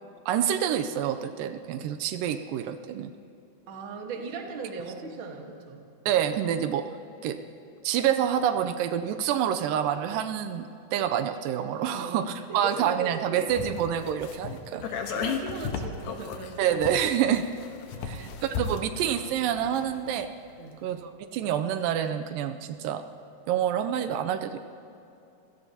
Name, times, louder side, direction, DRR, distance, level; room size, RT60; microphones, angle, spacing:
voice 1, 0.3-3.1 6.1-6.9 7.2-7.4 7.8-14.8 16.6-17.4 18.0-20.3 20.8-23.0 23.5-24.6, right 9 dB, 85° right, 9 dB, 2.3 m, -27 dB
voice 2, 3.7-5.9 12.0-13.5 14.7-16.8 18.0-18.6 20.6-20.8, right 4 dB, 50° right, 2 dB, 1.8 m, -39 dB
sound 1, 13.5-20.2 20.5-20.6, left 5 dB, 70° left, 2.4 m, -35 dB
28.0 x 17.0 x 2.9 m, 2.7 s
omnidirectional pair, 4.0 m